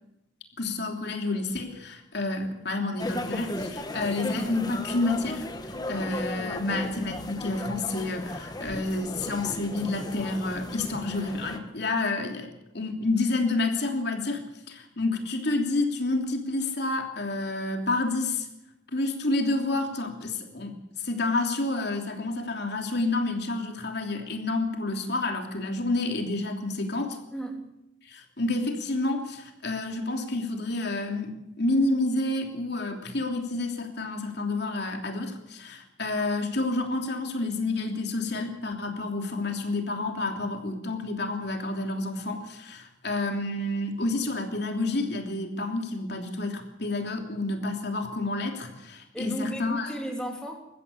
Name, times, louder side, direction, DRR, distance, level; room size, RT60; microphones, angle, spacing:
voice 1, 0.6-14.4 14.7-18.5 18.9-27.2 28.0-49.9, left 2 dB, 60° left, 3 dB, 3.1 m, -29 dB
sound 1, 3.0-11.6, left 1 dB, 20° left, 1.5 m, -36 dB
voice 2, 6.4-6.9 27.3-27.7 49.1-50.7, right 1 dB, 5° left, 1 dB, 3.3 m, -34 dB
22.0 x 15.5 x 8.5 m, 0.87 s
head